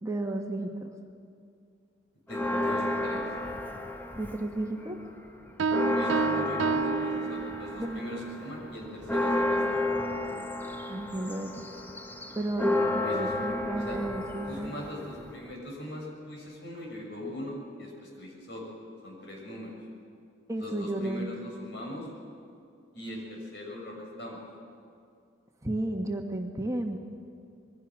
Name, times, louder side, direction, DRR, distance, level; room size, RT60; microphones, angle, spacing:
voice 1, 0.0-0.9 4.1-5.0 7.8-8.0 10.9-11.7 12.3-14.7 20.5-21.3 25.6-27.0, right 1 dB, 15° right, 3 dB, 1.3 m, -33 dB
voice 2, 2.3-3.2 5.9-9.6 13.0-13.6 13.8-14.0 14.5-18.6 19.0-19.7 20.5-22.1 22.9-24.4, left 1 dB, 65° left, -1 dB, 6.4 m, -40 dB
Church bell, 2.3-4.7 5.0-5.1 5.5-15.5, left 1 dB, 10° left, 1.3 m, -31 dB
sound 1, 5.6-8.0, right 5 dB, 80° right, 0.5 m, -30 dB
26.5 x 21.5 x 6.2 m, 2.4 s
head